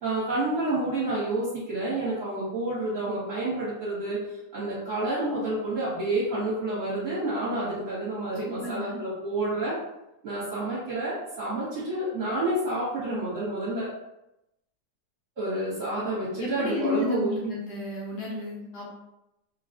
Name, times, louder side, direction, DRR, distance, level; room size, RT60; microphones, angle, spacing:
voice 1, 0.0-4.2 4.5-9.8 10.2-13.9 15.4-17.5, right 2 dB, 50° right, -10 dB, 1.3 m, -29 dB
voice 2, 8.4-9.0 16.4-18.9, left 2 dB, 65° left, -4 dB, 1.2 m, -32 dB
3.4 x 2.3 x 2.5 m, 0.89 s
omnidirectional pair, 2.0 m